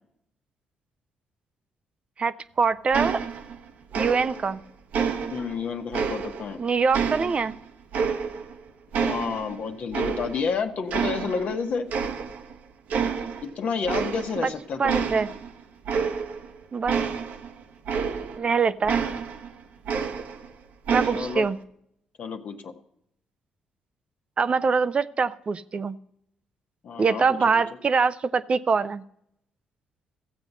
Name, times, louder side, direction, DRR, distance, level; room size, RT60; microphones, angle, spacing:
voice 1, 2.2-3.2 3.9-4.6 6.6-7.5 14.4-14.5 14.8-15.3 16.7-17.0 18.4-19.1 20.9-21.6 24.4-26.0 27.0-29.0, right 5 dB, 40° right, 14 dB, 0.5 m, -24 dB
sound 1, 2.9-3.6 3.9-4.6 4.9-6.6 6.9-8.6 8.9-10.5 10.9-11.6 11.9-12.5 12.9-13.5 13.8-14.5 14.9-18.5 18.9-20.5 20.9-21.5, right 6 dB, 65° right, 1.0 m, -29 dB
voice 2, 5.3-6.6 8.9-11.9 13.4-15.1 19.0-19.2 21.1-21.5 22.2-22.7 26.8-27.6, left 5 dB, 55° left, 5 dB, 1.2 m, -30 dB
14.5 x 7.9 x 5.5 m, 0.74 s
hypercardioid pair, 45°, 3 cm